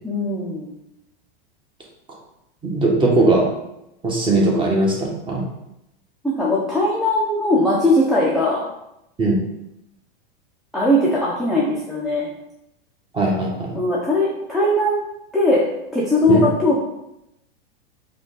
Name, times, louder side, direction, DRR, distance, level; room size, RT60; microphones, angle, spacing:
voice 1, 0.0-0.7 6.2-8.6 10.7-12.3 13.7-15.0 15.3-15.6 15.9-16.9, left 1 dB, ahead, -6 dB, 0.7 m, -19 dB
voice 2, 2.6-3.5 4.0-5.4 9.2-9.4 13.1-13.8 16.3-16.4, right 2 dB, 15° right, -2 dB, 1.2 m, -19 dB
5.0 x 2.5 x 3.9 m, 0.85 s
hypercardioid pair, 115°, 30 cm